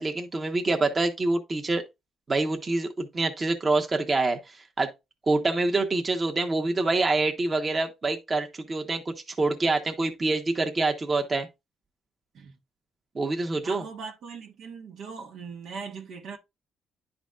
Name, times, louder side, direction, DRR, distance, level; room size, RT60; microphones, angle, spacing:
voice 1, 0.0-1.8 2.3-4.9 5.3-11.5 13.1-13.8, right 3 dB, 30° right, 1.2 m, -26 dB
voice 2, 13.6-16.4, right 5 dB, 70° right, 1.4 m, -39 dB
10.5 x 4.0 x 2.5 m
cardioid pair, 90°, 0 cm